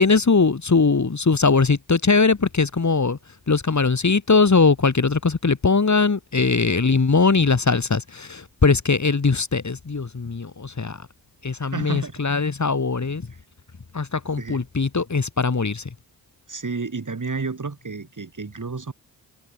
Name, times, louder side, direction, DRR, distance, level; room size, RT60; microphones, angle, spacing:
voice 1, 0.0-3.2 3.5-11.1 11.4-13.3 13.9-15.9, left 4 dB, 40° left, 3.2 m, -20 dB
voice 2, 11.6-12.1 14.4-14.6 16.5-18.9, right 4 dB, 45° right, 6.5 m, -31 dB
cardioid pair, 50°, 44 cm